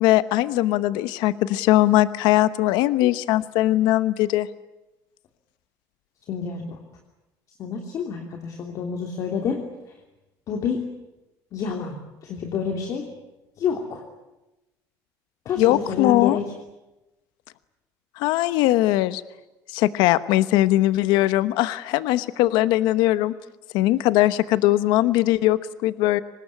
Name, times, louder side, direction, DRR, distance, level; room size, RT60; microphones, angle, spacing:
voice 1, 0.0-4.5 15.6-16.4 18.2-19.2 19.7-23.3 23.7-26.2, left 15 dB, 80° left, 14 dB, 1.0 m, -20 dB
voice 2, 6.3-6.8 7.6-9.6 10.5-10.8 11.5-13.1 13.6-14.0 15.4-16.4, left 6 dB, 50° left, 3 dB, 3.0 m, -28 dB
24.5 x 20.0 x 9.8 m, 0.99 s
cardioid pair, 135°, 7 cm